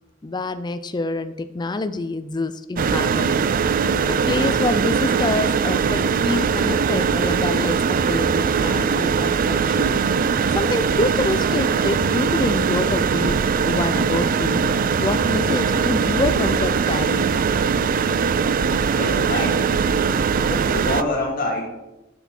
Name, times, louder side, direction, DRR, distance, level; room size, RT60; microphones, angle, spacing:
voice 1, 0.2-3.5 4.1-10.0 10.5-14.7 15.0-17.3, left 2 dB, 20° left, 11 dB, 0.4 m, -26 dB
sound 1, 2.8-21.0, right 6 dB, 45° right, 0.4 m, -21 dB
voice 2, 19.0-19.7 20.5-21.7, left 1 dB, 45° left, -1 dB, 2.5 m, -25 dB
7.3 x 7.0 x 5.9 m, 0.99 s
head